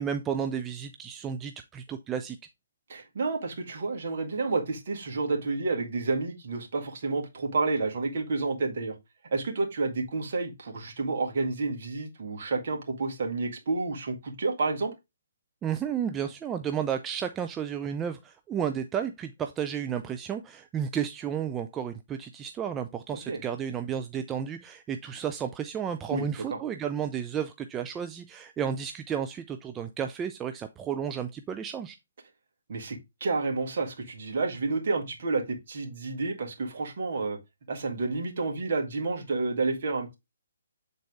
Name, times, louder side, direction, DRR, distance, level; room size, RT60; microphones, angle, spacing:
voice 1, 0.0-2.4 15.6-32.0, right 8 dB, 15° right, 0.5 m, -32 dB
voice 2, 2.9-9.0 9.3-14.9 23.3-23.4 26.1-26.6 32.7-37.4 37.7-40.1, right 3 dB, 55° right, 1.7 m, -30 dB
7.7 x 4.0 x 3.4 m
figure-of-eight pair, 140°, 0 cm